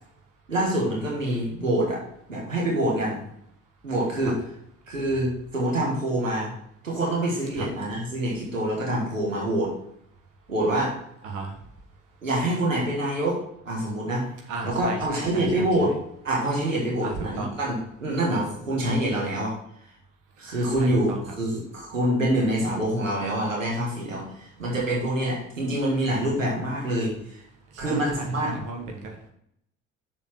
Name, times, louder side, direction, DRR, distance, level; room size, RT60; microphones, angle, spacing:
voice 1, 0.5-2.0 2.3-3.2 3.8-4.3 4.9-6.5 6.8-9.7 10.5-10.9 12.2-13.4 13.6-14.3 14.6-15.9 16.2-19.5 20.4-27.4 27.8-28.5, right 1 dB, 85° right, -2 dB, 1.6 m, -26 dB
voice 2, 14.5-15.9 17.0-17.6 20.8-21.2 27.7-29.1, right 3 dB, 55° right, 2 dB, 1.5 m, -35 dB
6.9 x 4.1 x 5.9 m, 0.72 s
figure-of-eight pair, 55°, 38 cm